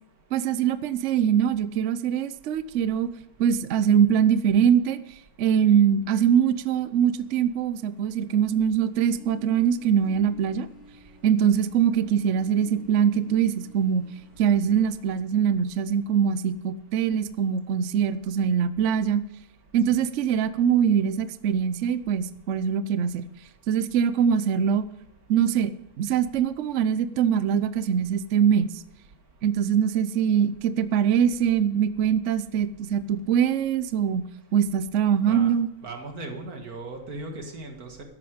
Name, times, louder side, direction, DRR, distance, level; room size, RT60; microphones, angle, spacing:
voice 1, 0.3-3.1 3.4-10.7 11.2-14.0 14.4-19.2 19.7-23.3 23.7-24.9 25.3-25.7 26.0-28.8 29.4-34.2 34.5-35.7, right 8 dB, 65° right, 13 dB, 0.9 m, -23 dB
sound 1, 8.7-15.2, left 1 dB, 65° left, 7.1 m, -51 dB
voice 2, 35.8-38.0, right 2 dB, 85° right, 3 dB, 2.5 m, -38 dB
13.5 x 11.0 x 5.0 m, 0.80 s
omnidirectional pair, 1.5 m